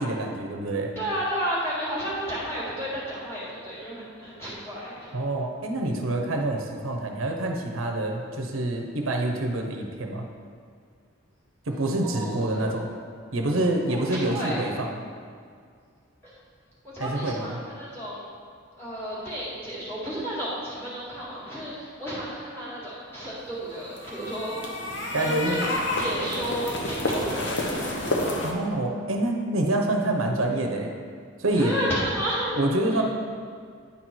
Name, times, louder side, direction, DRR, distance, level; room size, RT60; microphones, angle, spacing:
voice 1, 0.0-0.9 5.1-10.3 11.7-12.9 13.3-15.0 17.0-17.5 25.1-25.6 28.4-30.9 31.4-31.8 32.5-33.0, right 1 dB, 90° right, 2 dB, 0.9 m, -26 dB
voice 2, 1.0-5.1 12.0-12.6 13.9-14.6 16.2-16.3 16.9-18.3 18.8-24.5 25.2-25.6 25.9-27.9 31.5-32.6 32.9-33.0, equal, 10° left, -9 dB, 2.1 m, -32 dB
sound 1, 23.7-28.5, left 1 dB, 60° left, 0.9 m, -29 dB
9.7 x 4.3 x 4.6 m, 2.1 s
head